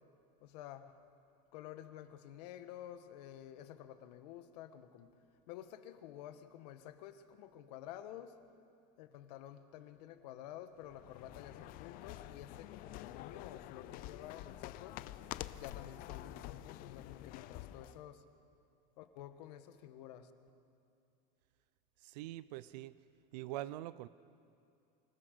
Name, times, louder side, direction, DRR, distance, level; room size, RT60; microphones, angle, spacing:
voice 1, 0.4-1.0 1.5-5.1 5.5-8.4 9.0-15.0 15.5-18.2 19.0-20.3, left 11 dB, 80° left, 9 dB, 1.5 m, -51 dB
sound 1, 10.8-18.0, left 14 dB, 45° left, 0.6 m, -48 dB
voice 2, 22.0-23.0 23.3-24.1, right 15 dB, 85° right, 16 dB, 0.6 m, -44 dB
25.5 x 16.0 x 6.7 m, 2.6 s
supercardioid pair, 150°, 21 cm